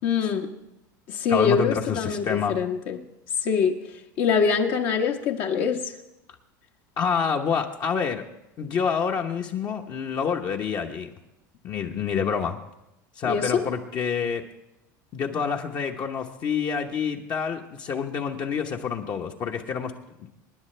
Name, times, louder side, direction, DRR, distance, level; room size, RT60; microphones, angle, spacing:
voice 1, 0.0-0.5 1.1-3.0 3.4-3.8 4.2-5.9 13.2-13.6, left 6 dB, 60° left, 1.3 m, -24 dB
voice 2, 1.3-2.5 7.0-8.2 8.6-11.1 11.6-12.6 13.2-14.4 15.1-19.9 20.2-20.3, left 6 dB, 40° left, 1.1 m, -27 dB
26.5 x 9.9 x 3.4 m
hypercardioid pair, 90°, 10 cm